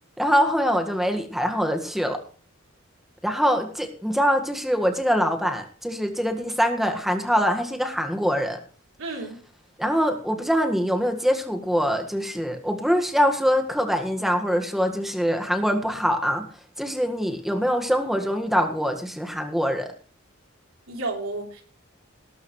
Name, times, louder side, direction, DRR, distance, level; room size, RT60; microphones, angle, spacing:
voice 1, 0.2-2.2 3.2-8.6 9.8-16.5 16.8-19.9, equal, ahead, 5 dB, 1.7 m, -24 dB
voice 2, 9.0-9.4 20.9-21.6, right 2 dB, 80° right, 0 dB, 3.6 m, -31 dB
19.5 x 12.0 x 3.2 m, 0.42 s
head